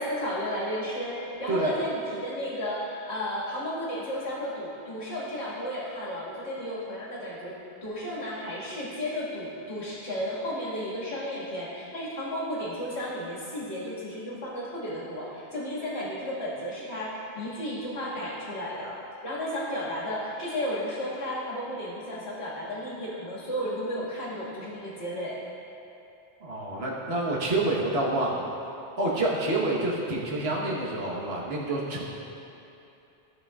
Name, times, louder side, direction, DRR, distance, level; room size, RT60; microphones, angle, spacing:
voice 1, 0.0-7.5 7.8-19.0 19.2-25.4, equal, 75° left, -8 dB, 2.2 m, -33 dB
voice 2, 26.4-28.5 29.0-32.0, right 2 dB, 70° right, -4 dB, 1.5 m, -28 dB
13.0 x 6.8 x 2.4 m, 2.9 s
omnidirectional pair, 1.1 m